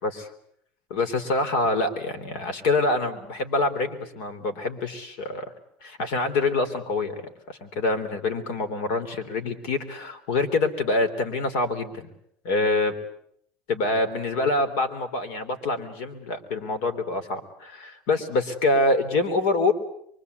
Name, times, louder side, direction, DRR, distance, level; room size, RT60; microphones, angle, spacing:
voice 1, 0.9-5.5 5.8-7.2 7.5-12.1 12.4-12.9 13.7-19.7, left 2 dB, 80° left, 10 dB, 3.6 m, -26 dB
25.0 x 24.0 x 8.3 m, 0.70 s
cardioid pair, 140°, 4 cm